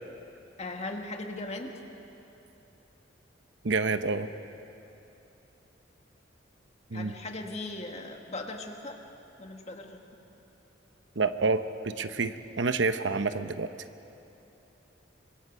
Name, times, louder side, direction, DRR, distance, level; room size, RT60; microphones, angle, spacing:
voice 1, 0.6-1.7 6.9-9.0 9.4-10.0, left 2 dB, 35° left, 3 dB, 1.8 m, -38 dB
voice 2, 3.6-4.3 6.9-7.1 11.2-13.7, right 3 dB, 75° right, 10 dB, 0.9 m, -28 dB
25.0 x 25.0 x 5.5 m, 2.9 s
head